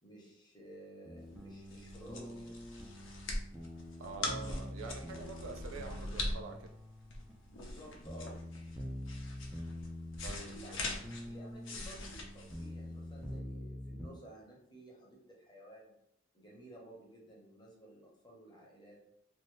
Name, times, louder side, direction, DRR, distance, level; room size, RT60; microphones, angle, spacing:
voice 1, 0.0-2.6 7.4-8.4 10.4-10.9 11.2-15.9 16.3-19.0, right 1 dB, 20° left, -3 dB, 0.9 m, -54 dB
sound 1, 1.0-14.1, left 1 dB, 5° right, 0.4 m, -46 dB
sound 2, 1.3-13.3, left 2 dB, 65° left, 0.6 m, -42 dB
voice 2, 4.0-6.7 10.2-11.0, right 4 dB, 80° right, 7 dB, 0.4 m, -46 dB
2.6 x 2.6 x 3.1 m, 0.76 s
head